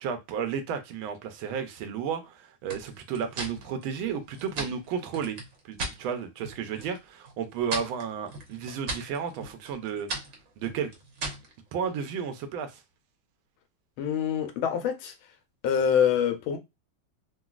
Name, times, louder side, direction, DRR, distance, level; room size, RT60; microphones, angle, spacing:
voice 1, 0.0-5.4 5.6-10.1 10.6-10.9 11.7-12.8, right 7 dB, 80° right, 1.4 m, -33 dB
sound 1, 2.7-6.0 6.4-7.0 7.3-11.5, right 2 dB, 55° right, 1.0 m, -38 dB
voice 2, 14.0-15.1 15.6-16.6, left 8 dB, 80° left, 1.5 m, -25 dB
3.9 x 2.3 x 2.3 m
omnidirectional pair, 2.2 m